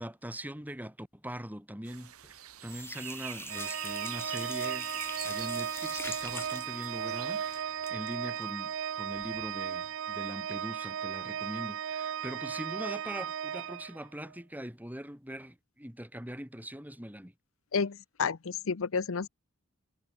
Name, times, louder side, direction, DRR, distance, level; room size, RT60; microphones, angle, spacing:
voice 1, 0.0-4.9 5.2-17.3, equal, 10° right, 5.5 m, -42 dB
sound 1, 1.8-7.6, right 13 dB, 85° right, 1.5 m, -45 dB
sound 2, 2.0-2.4 2.6-9.5 9.8-9.9 10.3-10.4, left 4 dB, 10° left, 1.1 m, -44 dB
Organ, 3.5-14.3, right 9 dB, 60° right, 0.4 m, -36 dB
voice 2, 17.7-19.3, left 5 dB, 65° left, 0.7 m, -31 dB
head